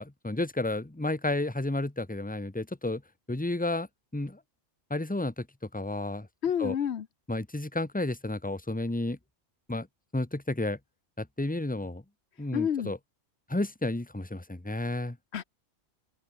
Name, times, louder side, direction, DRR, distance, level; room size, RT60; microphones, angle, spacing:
voice 1, 0.0-3.0 3.3-3.9 4.1-4.4 4.9-5.5 5.7-6.3 6.6-6.7 7.3-9.2 9.7-9.9 10.1-10.8 11.2-12.0 12.4-13.0 13.5-15.2, left 2 dB, 5° left, 1.3 m, -31 dB
voice 2, 6.4-7.1 12.5-12.9 15.3-15.4, left 8 dB, 65° left, 1.1 m, -29 dB
open air
omnidirectional pair, 1.2 m